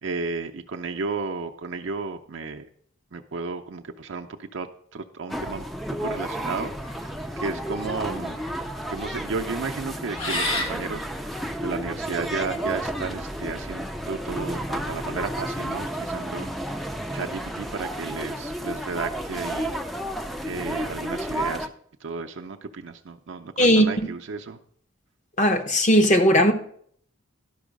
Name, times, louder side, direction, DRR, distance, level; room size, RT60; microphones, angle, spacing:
voice 1, 0.0-2.7 3.1-4.7 4.9-5.7 6.0-6.7 7.4-8.4 8.9-11.1 11.6-16.8 17.1-19.8 20.4-21.7 22.0-24.6, right 4 dB, 65° right, 0.5 m, -33 dB
sound 1, 5.3-21.7, right 1 dB, ahead, 0.4 m, -32 dB
sound 2, 6.8-12.6, left 1 dB, 80° left, 1.8 m, -34 dB
voice 2, 23.6-24.1 25.4-26.5, equal, 35° left, 0.7 m, -18 dB
12.0 x 5.4 x 5.1 m
head